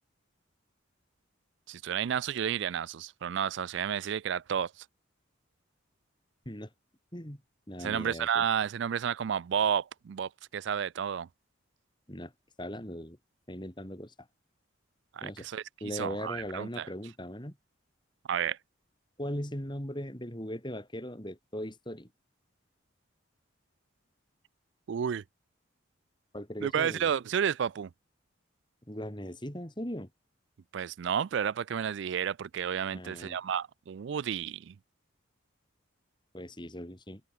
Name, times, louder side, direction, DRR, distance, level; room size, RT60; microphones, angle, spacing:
voice 1, 1.7-4.8 7.8-11.3 15.1-16.9 18.3-18.6 24.9-25.2 26.6-27.9 30.7-34.8, right 8 dB, 60° right, 0.3 m, -31 dB
voice 2, 7.7-8.4 12.1-12.3 12.6-13.2 13.5-14.3 15.2-15.5 15.8-17.6 19.2-22.1 26.3-27.1 28.9-30.1 32.9-33.4 36.3-37.2, equal, 20° left, 3.8 m, -39 dB
open air
head